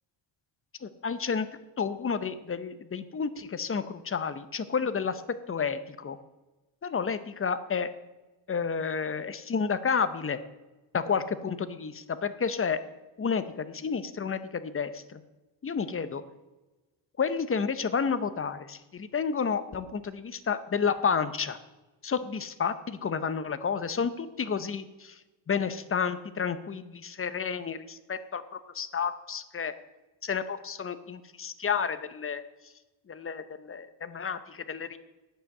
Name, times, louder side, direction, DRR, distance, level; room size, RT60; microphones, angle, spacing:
voice 1, 0.8-1.5 1.8-5.2 5.5-6.2 6.8-7.9 8.5-10.4 10.9-12.8 13.2-15.2 15.6-16.2 17.2-21.6 22.0-25.2 25.5-29.7 30.2-32.4 33.1-35.0, left 6 dB, 30° left, 12 dB, 0.7 m, -31 dB
9.7 x 7.9 x 7.7 m, 1.1 s
cardioid pair, 130°, 47 cm